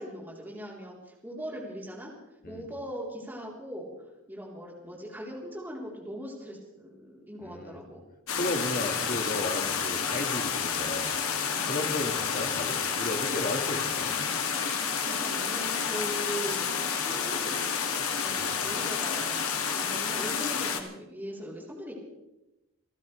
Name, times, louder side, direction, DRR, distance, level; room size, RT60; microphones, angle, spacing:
voice 1, 0.0-2.1 2.5-3.9 4.3-8.0 15.0-17.6 18.1-21.9, equal, 10° right, -4 dB, 3.7 m, -40 dB
voice 2, 7.4-7.8 8.3-11.2 11.7-14.2 18.3-18.5, left 1 dB, 40° left, 5 dB, 1.8 m, -34 dB
sound 1, 8.3-20.8, left 6 dB, 90° left, 2.0 m, -30 dB
27.5 x 15.0 x 3.3 m, 0.97 s
head